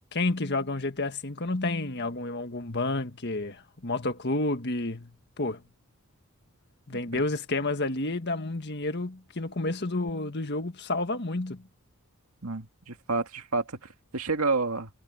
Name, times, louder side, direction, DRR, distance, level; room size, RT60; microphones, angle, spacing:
voice 1, 0.1-5.6 6.9-11.6, left 2 dB, 50° left, 1.7 m, -30 dB
voice 2, 12.4-13.8 14.1-14.9, right 3 dB, 75° right, 2.0 m, -29 dB
head